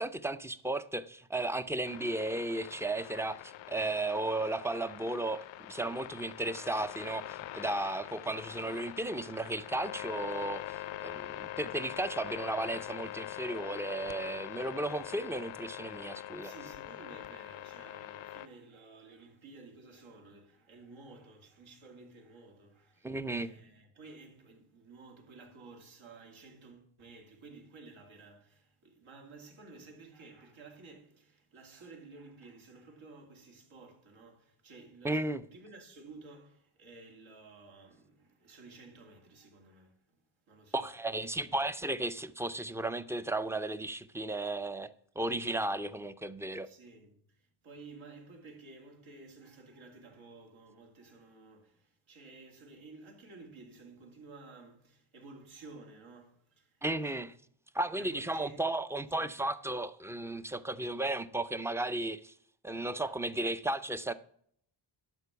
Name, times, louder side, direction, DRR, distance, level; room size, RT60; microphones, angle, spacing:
voice 1, 0.0-16.5 23.0-23.5 35.0-35.4 40.7-46.7 56.8-57.3 57.7-62.3 62.6-64.1, right 2 dB, 5° right, 0.4 m, -34 dB
sound 1, 1.8-18.5, left 14 dB, 70° left, 0.5 m, -44 dB
voice 2, 16.4-40.2 40.5-40.9 41.1-41.6 46.6-57.2 57.9-58.6 59.2-59.4 62.7-63.2, right 3 dB, 75° right, 2.6 m, -53 dB
11.5 x 4.5 x 6.9 m
cardioid pair, 110°, 48 cm